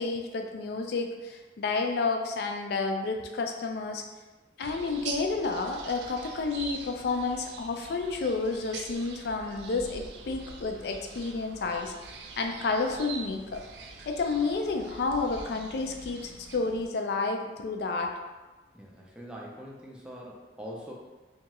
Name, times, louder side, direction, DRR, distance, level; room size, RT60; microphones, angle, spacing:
voice 1, 0.0-4.0 4.6-11.9 12.4-13.6 14.1-18.1, left 3 dB, 65° left, 3 dB, 0.3 m, -30 dB
sound 1, 4.6-16.9, right 4 dB, 70° right, 0.3 m, -44 dB
voice 2, 18.7-20.9, equal, 5° right, -3 dB, 0.4 m, -43 dB
2.8 x 2.2 x 2.9 m, 1.2 s
head